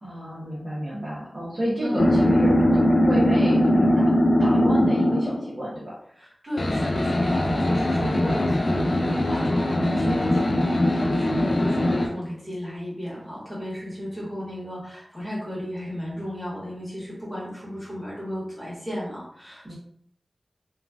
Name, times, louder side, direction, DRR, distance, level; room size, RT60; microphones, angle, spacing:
voice 1, 0.0-5.9 19.6-19.7, right 1 dB, 40° right, -8 dB, 1.1 m, -30 dB
voice 2, 1.8-2.3 6.1-19.7, equal, ahead, -7 dB, 1.4 m, -34 dB
sound 1, 2.0-5.5 6.6-12.1, left 1 dB, 45° left, 0.4 m, -21 dB
3.0 x 2.4 x 2.4 m, 0.67 s
wide cardioid pair, 90°, 0 cm